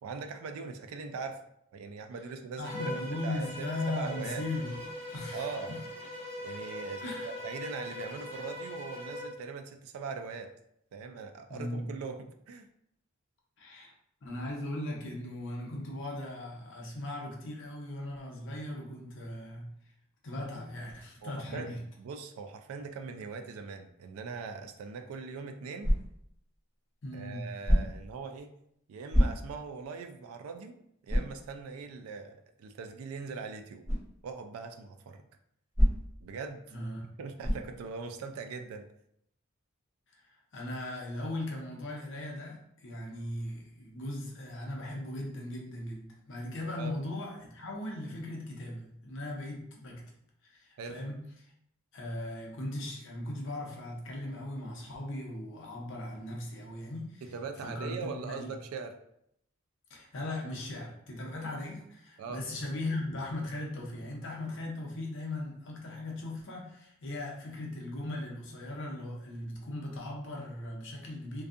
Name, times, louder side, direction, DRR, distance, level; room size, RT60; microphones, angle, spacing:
voice 1, 0.0-1.4 1.7-4.4 5.3-5.7 6.4-10.5 10.9-12.7 21.2-25.9 27.1-28.5 28.9-30.8 31.0-33.8 34.2-35.3 36.2-36.8 37.2-38.9 46.8-46.9 50.8-51.0 57.2-59.0 62.2-62.4, right 5 dB, 90° right, 6 dB, 0.3 m, -41 dB
voice 2, 2.6-4.8 5.1-5.8 7.0-7.3 11.5-11.9 13.6-13.9 14.2-19.7 20.2-21.8 27.0-27.5 36.7-37.1 40.1-50.0 50.4-51.2 51.9-57.3 57.6-58.5 59.9-71.4, left 1 dB, 60° left, -1 dB, 0.7 m, -38 dB
Bowed string instrument, 2.6-9.4, left 1 dB, 25° left, 1.0 m, -41 dB
sound 1, 25.8-26.3 27.6-28.1 29.1-29.7 30.2-30.3 31.1-31.4 33.8-34.1 35.7-36.3 37.4-37.8, equal, 20° right, 1.2 m, -26 dB
2.5 x 2.3 x 2.4 m, 0.73 s
head